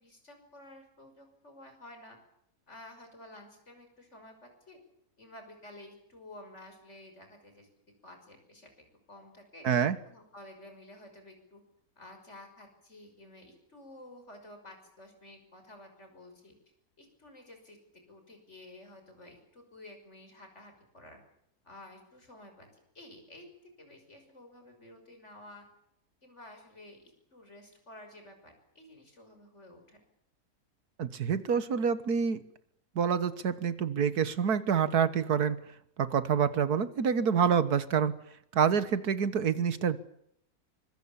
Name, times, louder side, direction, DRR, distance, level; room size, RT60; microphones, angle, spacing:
voice 1, 0.0-2.2 2.7-4.8 5.2-7.7 8.0-9.7 10.0-11.6 12.0-16.5 17.0-17.8 18.1-21.2 21.6-22.7 22.9-23.5 23.8-25.7 26.2-30.0, left 1 dB, 45° left, 5 dB, 6.3 m, -52 dB
voice 2, 9.6-10.0 31.0-32.5 33.0-35.6 36.0-38.2 38.5-40.0, right 7 dB, 85° right, 13 dB, 1.9 m, -27 dB
24.5 x 23.5 x 7.3 m, 0.74 s
omnidirectional pair, 1.6 m